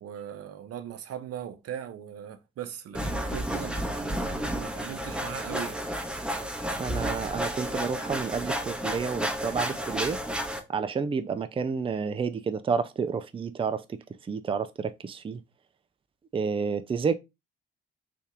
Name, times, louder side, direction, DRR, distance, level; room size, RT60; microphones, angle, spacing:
voice 1, 0.0-4.0 4.5-5.8, right 9 dB, 55° right, 0.7 m, -39 dB
sound 1, 3.0-10.6, equal, 5° right, 0.8 m, -31 dB
voice 2, 6.8-10.2 10.7-14.0 14.3-15.4 16.3-17.2, right 5 dB, 20° right, 0.4 m, -30 dB
3.4 x 2.7 x 3.5 m
hypercardioid pair, 45°, 29 cm